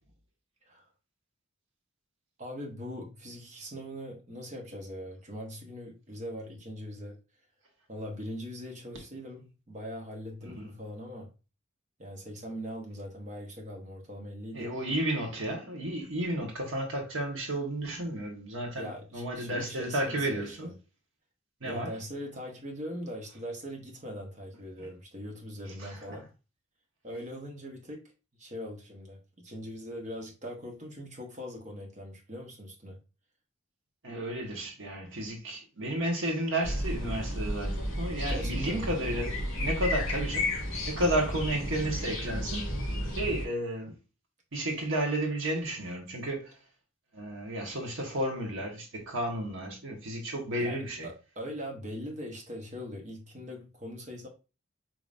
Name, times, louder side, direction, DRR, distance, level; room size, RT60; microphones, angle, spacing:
voice 1, 2.4-7.2 7.9-11.3 12.0-14.7 18.8-20.7 21.6-26.3 27.0-28.0 28.4-33.0 38.3-38.9 50.6-54.3, equal, 35° right, 1.1 m, -41 dB
voice 2, 14.5-18.9 19.1-20.7 21.6-21.9 24.8-24.9 25.8-26.2 34.0-40.5 40.9-42.7 43.2-43.9 44.5-46.6 47.1-51.1, right 1 dB, 60° right, 1.2 m, -32 dB
sound 1, 36.6-43.5, left 1 dB, 60° left, 2.0 m, -32 dB
5.0 x 2.9 x 2.5 m
head